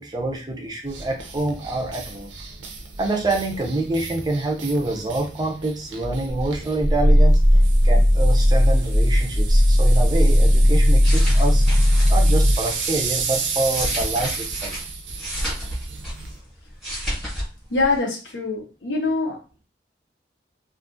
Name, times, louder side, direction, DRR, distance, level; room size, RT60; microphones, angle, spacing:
voice 1, 0.0-2.3 3.0-7.4 7.8-11.6 12.1-14.8, right 2 dB, 20° right, 2 dB, 0.4 m, -26 dB
sound 1, 0.8-16.4, right 5 dB, 85° right, 0.5 m, -33 dB
Growling, 6.3-12.6, equal, 45° left, 0.6 m, -16 dB
sound 2, 10.8-13.0 13.5-16.4 16.7-17.5 17.8-18.0, equal, ahead, 0.9 m, -31 dB
voice 2, 17.7-19.6, left 3 dB, 80° left, 1 dB, 0.7 m, -24 dB
2.5 x 2.3 x 2.5 m, 0.34 s
head